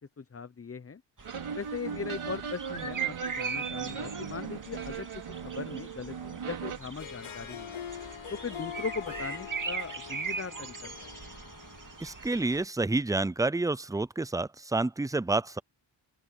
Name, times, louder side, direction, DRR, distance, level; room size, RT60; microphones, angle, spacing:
voice 1, 0.2-1.0 1.5-7.8 8.3-11.1, left 5 dB, 30° left, 0.7 m, -39 dB
sound 1, 1.2-12.6, right 5 dB, 40° right, 2.7 m, -40 dB
sound 2, 1.2-6.8, right 7 dB, 90° right, 3.4 m, -38 dB
Harp, 6.8-12.3, left 8 dB, 80° left, 1.4 m, -43 dB
voice 2, 12.0-15.6, right 2 dB, 10° right, 0.4 m, -29 dB
open air
wide cardioid pair, 125°, 48 cm